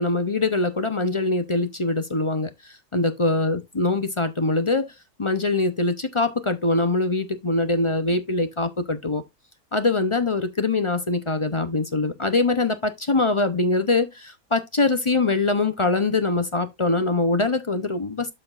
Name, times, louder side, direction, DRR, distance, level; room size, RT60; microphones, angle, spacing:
voice 1, 0.0-4.9 5.2-9.2 9.7-18.3, left 3 dB, 30° left, 0.6 m, -23 dB
12.5 x 4.3 x 2.5 m
omnidirectional pair, 1.5 m